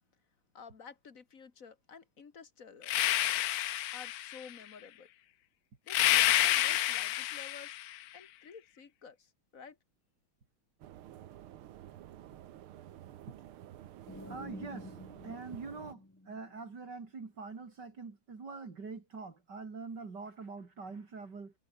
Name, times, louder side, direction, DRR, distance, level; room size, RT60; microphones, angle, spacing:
voice 1, 0.5-2.9 3.9-5.1 5.8-7.8 8.1-9.8, left 6 dB, 40° left, 2.1 m, -52 dB
sound 1, 2.8-4.5 5.9-7.9, left 14 dB, 85° left, 0.8 m, -29 dB
sound 2, 10.8-16.0, right 12 dB, 85° right, 1.9 m, -51 dB
sound 3, 14.1-16.9, left 1 dB, 10° left, 1.8 m, -50 dB
voice 2, 14.3-14.9 15.2-21.5, right 4 dB, 55° right, 3.4 m, -44 dB
omnidirectional pair, 2.3 m